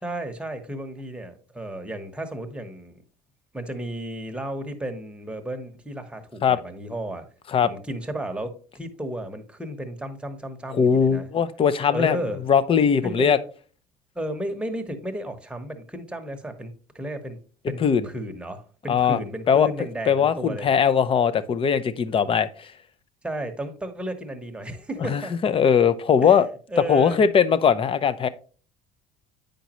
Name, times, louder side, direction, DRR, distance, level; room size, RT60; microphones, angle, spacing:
voice 1, 0.0-3.0 3.5-7.3 7.6-11.3 11.9-12.4 13.0-13.5 14.1-17.4 17.7-20.7 23.2-25.4 26.2-26.4 26.7-27.2, right 1 dB, 5° right, 1.1 m, -33 dB
voice 2, 10.7-12.2 12.5-13.4 17.6-18.1 18.9-19.2 19.5-19.7 20.1-22.7 25.1-26.5 26.9-28.3, left 7 dB, 35° left, 0.6 m, -20 dB
8.2 x 5.2 x 3.0 m
supercardioid pair, 105°, 17 cm